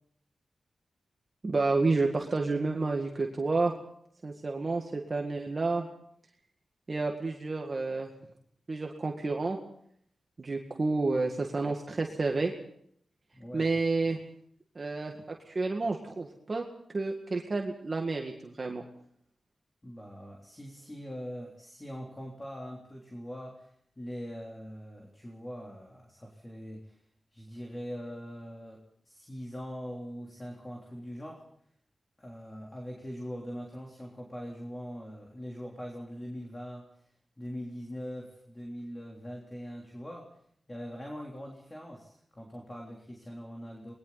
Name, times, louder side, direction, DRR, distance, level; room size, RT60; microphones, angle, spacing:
voice 1, 1.4-3.7 4.2-5.9 6.9-8.1 8.7-9.6 10.4-12.5 13.5-14.2 14.8-15.1 15.5-16.6 16.9-18.8, right 3 dB, 40° right, 2 dB, 1.9 m, -30 dB
voice 2, 13.3-13.7 19.8-27.0 27.3-31.4 32.2-40.3 40.7-43.9, equal, 20° left, 0 dB, 3.5 m, -42 dB
29.5 x 21.0 x 4.1 m, 0.66 s
wide cardioid pair, 85°, 0 cm